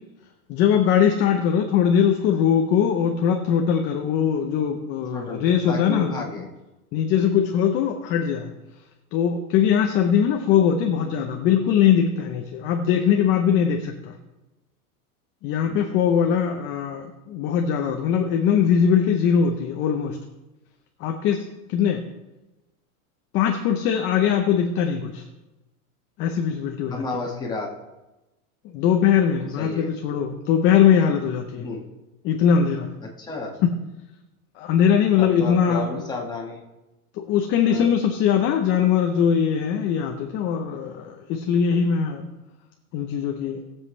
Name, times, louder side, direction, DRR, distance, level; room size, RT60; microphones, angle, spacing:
voice 1, 0.5-6.3 6.9-8.5 9.1-14.1 15.4-20.2 21.0-22.0 23.3-25.2 26.2-27.0 28.7-31.7 32.2-32.9 33.6-33.7 34.6-36.0 37.3-42.3 42.9-43.6, left 8 dB, 25° left, 4 dB, 0.7 m, -21 dB
voice 2, 5.1-6.5 15.7-16.0 26.9-27.7 29.6-29.9 31.6-31.8 33.2-33.6 35.2-36.6 37.7-37.9, left 3 dB, 10° left, -3 dB, 1.7 m, -32 dB
19.0 x 7.5 x 3.2 m, 1.0 s
supercardioid pair, 155°, 44 cm